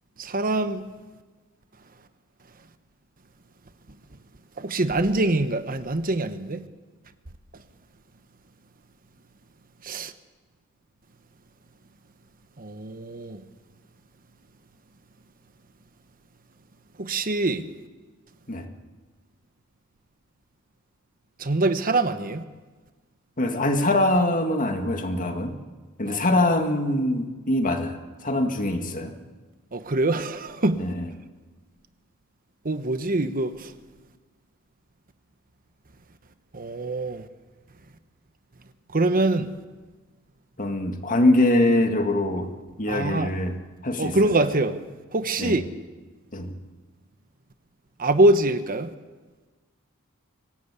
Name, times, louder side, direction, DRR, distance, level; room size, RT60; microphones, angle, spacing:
voice 1, 0.2-0.8 4.6-6.6 9.8-10.1 12.6-13.4 17.0-17.7 21.4-22.4 26.1-26.2 29.7-30.8 32.6-33.7 36.5-37.2 38.9-39.5 42.9-43.3 44.0-44.8 45.1-45.6 48.0-48.9, right 2 dB, 40° right, 1.1 m, -24 dB
voice 2, 23.4-25.6 26.0-28.0 28.2-29.1 30.8-31.1 40.6-42.5 42.8-43.5 43.8-44.3 45.4-45.7 46.3-46.5, left 1 dB, 40° left, 2.0 m, -23 dB
25.5 x 17.0 x 8.4 m
head